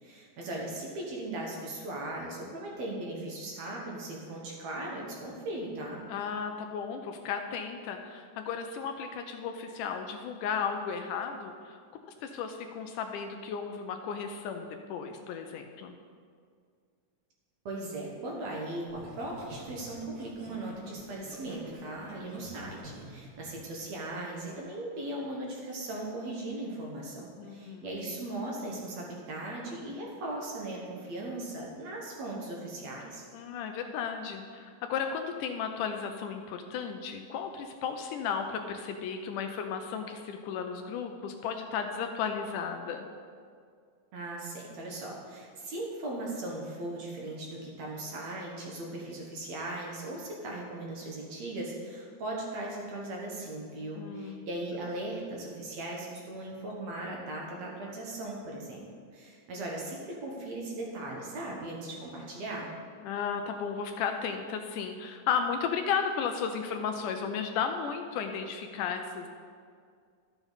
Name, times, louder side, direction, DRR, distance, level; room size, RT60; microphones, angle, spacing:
voice 1, 0.0-6.0 17.7-33.2 44.1-58.8 59.1-62.7, right 1 dB, 60° right, -2 dB, 2.1 m, -38 dB
voice 2, 6.1-16.0 27.4-28.2 33.3-43.1 54.0-54.5 63.0-69.3, left 6 dB, 80° left, 5 dB, 2.0 m, -34 dB
Laughter, 18.9-24.6 25.0-25.3, right 1 dB, 75° right, 0.8 m, -49 dB
12.5 x 7.0 x 4.0 m, 2.1 s
omnidirectional pair, 3.9 m